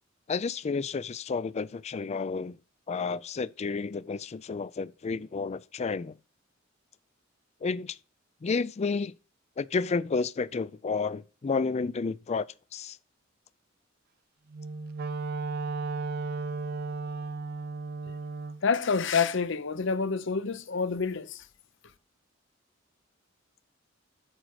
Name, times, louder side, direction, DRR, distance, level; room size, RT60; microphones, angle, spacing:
voice 1, 0.3-2.6 2.9-6.2 7.6-8.0 8.4-9.1 9.6-12.5 12.7-13.0, left 4 dB, 35° left, 0.4 m, -31 dB
Wind instrument woodwind instrument, 14.5-18.6, right 4 dB, 50° right, 0.5 m, -34 dB
voice 2, 18.6-21.4, left 5 dB, 65° left, 0.7 m, -28 dB
8.9 x 6.3 x 4.7 m
head